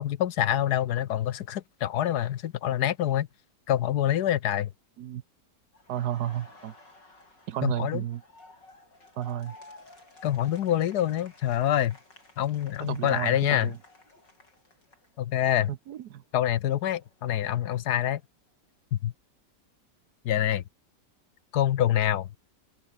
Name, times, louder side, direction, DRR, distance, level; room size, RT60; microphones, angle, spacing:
voice 1, 0.0-3.3 3.7-4.7 7.6-8.0 10.2-12.0 12.4-13.7 15.2-15.7 16.3-18.2 18.9-19.1 20.2-20.6 21.5-22.3, left 11 dB, 70° left, 1.3 m, -26 dB
Laughter, 5.7-15.6 15.9-17.9, left 2 dB, 85° left, 7.8 m, -54 dB
voice 2, 5.9-6.7 7.5-8.2 9.2-9.6 12.8-13.8 15.7-16.2, right 12 dB, 70° right, 1.3 m, -32 dB
open air
omnidirectional pair, 1.9 m